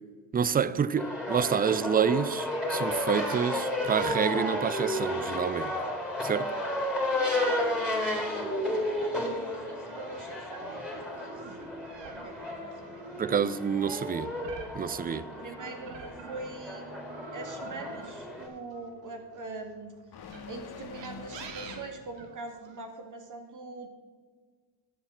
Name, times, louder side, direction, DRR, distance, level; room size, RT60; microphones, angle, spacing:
voice 1, 0.3-5.7 6.2-6.5 13.2-14.3 14.7-15.2, right 7 dB, 20° right, 0.4 m, -28 dB
sound 1, 1.0-18.5, left 1 dB, ahead, 3.1 m, -32 dB
voice 2, 7.0-13.1 15.1-19.9 20.5-23.9, right 2 dB, 40° right, 2.2 m, -43 dB
sound 2, 9.9-16.7 17.1-19.5 20.2-22.8, right 5 dB, 70° right, 1.6 m, -48 dB
sound 3, 15.9-22.1, left 4 dB, 55° left, 1.7 m, -48 dB
11.0 x 7.0 x 5.7 m
supercardioid pair, 75°, 45 cm